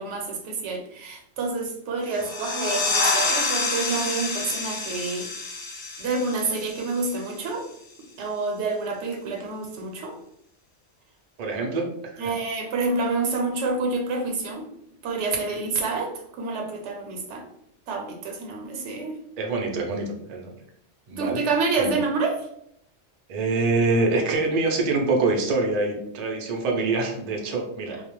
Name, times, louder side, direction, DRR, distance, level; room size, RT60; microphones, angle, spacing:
voice 1, 0.0-5.5 6.0-7.7 8.2-10.2 12.2-14.7 15.0-17.5 17.9-19.2 21.1-22.5, right 3 dB, 80° right, 2 dB, 0.9 m, -28 dB
sound 1, 2.1-7.4, left 3 dB, 80° left, 0.9 m, -28 dB
voice 2, 11.4-12.3 19.4-20.6 21.1-21.4 21.8-22.0 23.3-28.0, right 3 dB, 55° right, 1 dB, 0.4 m, -25 dB
2.3 x 2.1 x 2.9 m, 0.72 s
omnidirectional pair, 1.2 m